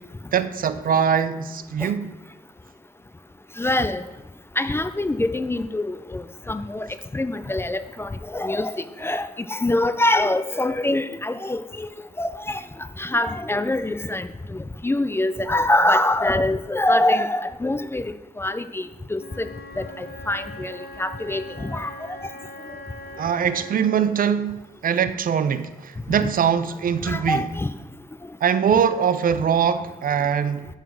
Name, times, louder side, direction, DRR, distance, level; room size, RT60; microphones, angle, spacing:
voice 1, 0.3-2.1 23.2-27.4 28.4-30.7, right 7 dB, 65° right, 0.4 m, -22 dB
voice 2, 3.6-4.0 4.6-6.9 7.1-11.9 12.2-12.6 13.0-19.5 19.8-22.3 26.2-26.3 27.0-27.7, left 1 dB, 15° left, 0.3 m, -24 dB
Wind instrument woodwind instrument, 19.2-24.1, left 1 dB, 85° left, 0.9 m, -41 dB
9.1 x 4.0 x 5.9 m
wide cardioid pair, 115°, 15 cm